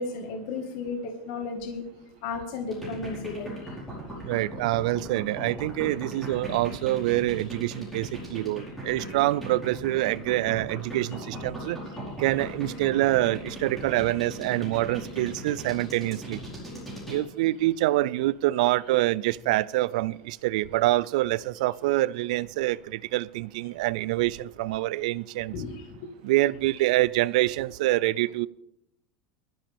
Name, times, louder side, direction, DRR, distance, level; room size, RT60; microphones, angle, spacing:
voice 1, 0.0-1.8 2.2-3.5 11.7-11.8 25.5-25.9, left 4 dB, 55° left, 3 dB, 1.8 m, -34 dB
sound 1, 2.7-17.2, right 1 dB, 5° left, 4.5 m, -38 dB
voice 2, 4.2-11.8 12.2-16.4 17.1-25.5 26.2-28.5, right 17 dB, 70° right, 20 dB, 0.5 m, -26 dB
19.0 x 13.0 x 3.5 m, 0.77 s
supercardioid pair, 180°, 4 cm